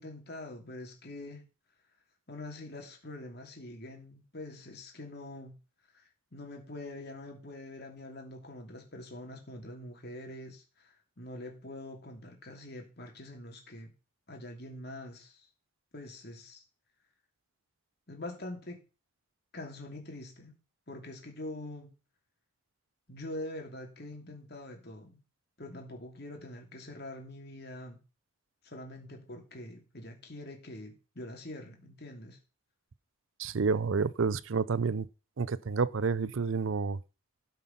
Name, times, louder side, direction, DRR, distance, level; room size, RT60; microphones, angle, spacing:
voice 1, 0.0-1.5 2.3-5.6 5.9-13.9 14.3-15.5 15.9-16.6 18.1-18.8 19.5-20.6 20.9-21.9 23.1-25.2 25.6-28.0 28.6-32.4, left 1 dB, 50° left, 2.8 m, -44 dB
voice 2, 33.4-35.1 35.4-37.0, right 5 dB, 70° right, 0.5 m, -29 dB
13.0 x 5.5 x 5.8 m
head